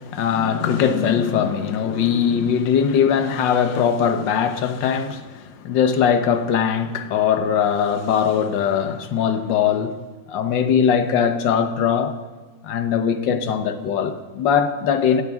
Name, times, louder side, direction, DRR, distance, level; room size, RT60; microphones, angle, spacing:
voice 1, 0.0-10.0 10.3-12.1 12.6-15.2, left 7 dB, 75° left, 1.7 m, -20 dB
21.0 x 16.5 x 3.6 m
omnidirectional pair, 2.0 m